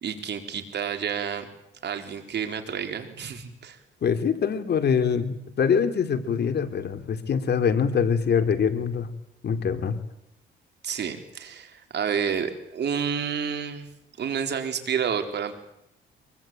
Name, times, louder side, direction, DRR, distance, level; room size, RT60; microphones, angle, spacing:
voice 1, 0.0-1.5 1.8-3.8 10.8-13.9 14.2-15.5, right 7 dB, 60° right, 6 dB, 4.1 m, -29 dB
voice 2, 4.0-9.1 9.4-10.0, left 6 dB, 55° left, 8 dB, 3.0 m, -24 dB
24.5 x 23.0 x 9.0 m, 0.79 s
cardioid pair, 90°, 20 cm